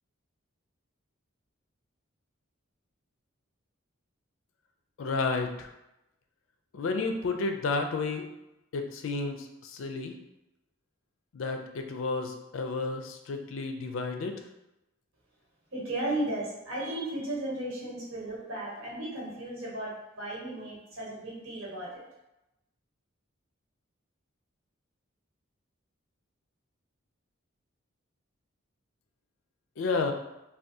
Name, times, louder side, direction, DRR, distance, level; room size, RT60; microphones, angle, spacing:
voice 1, 5.0-5.7 6.7-8.3 8.7-10.1 11.3-14.4 29.8-30.1, left 3 dB, 70° left, 5 dB, 0.4 m, -31 dB
voice 2, 15.7-22.0, right 1 dB, 85° right, -6 dB, 1.4 m, -35 dB
3.5 x 2.3 x 2.6 m, 0.93 s
head